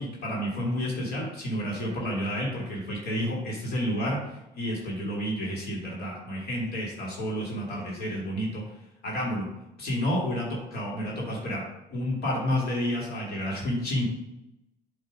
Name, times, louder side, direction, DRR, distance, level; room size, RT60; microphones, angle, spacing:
voice 1, 0.0-8.6 9.0-9.5 9.8-11.6 11.9-14.1, equal, 65° left, -3 dB, 2.2 m, -30 dB
8.3 x 3.2 x 4.9 m, 0.91 s
cardioid pair, 110°, 17 cm